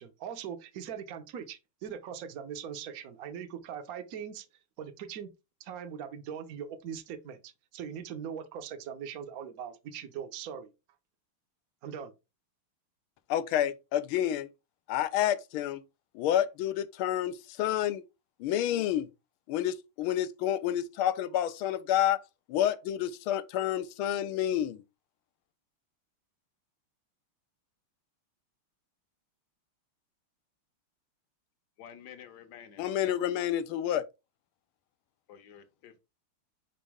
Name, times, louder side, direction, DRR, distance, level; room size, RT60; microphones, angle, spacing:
voice 1, 0.0-4.5 4.8-5.3 5.6-10.7 11.8-12.1, right 8 dB, 55° right, 1.0 m, -41 dB
voice 2, 13.3-14.5 14.9-15.8 16.1-18.0 18.4-19.1 19.5-22.2 22.5-24.8 32.8-34.0, left 11 dB, 80° left, 1.5 m, -29 dB
voice 3, 31.8-32.8 35.3-36.0, left 8 dB, 55° left, 1.3 m, -50 dB
5.3 x 5.1 x 3.5 m
omnidirectional pair, 2.4 m